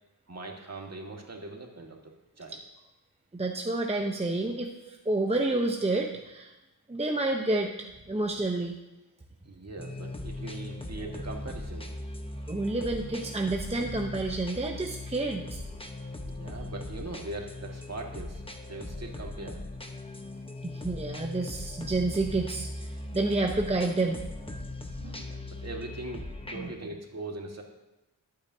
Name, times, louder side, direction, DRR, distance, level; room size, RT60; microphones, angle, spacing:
voice 1, 0.3-2.6 5.8-5.9 9.5-11.9 16.3-18.4 18.7-19.6 25.0-27.6, right 2 dB, 40° right, 1 dB, 1.8 m, -41 dB
voice 2, 3.3-6.1 6.3-6.5 6.9-8.8 12.5-15.6 20.6-22.9 23.1-24.2 26.5-26.7, right 2 dB, 15° right, 1 dB, 0.8 m, -29 dB
sound 1, 9.8-26.7, left 2 dB, 15° left, 1.0 m, -39 dB
21.5 x 8.6 x 2.8 m, 1.0 s
wide cardioid pair, 125°, 41 cm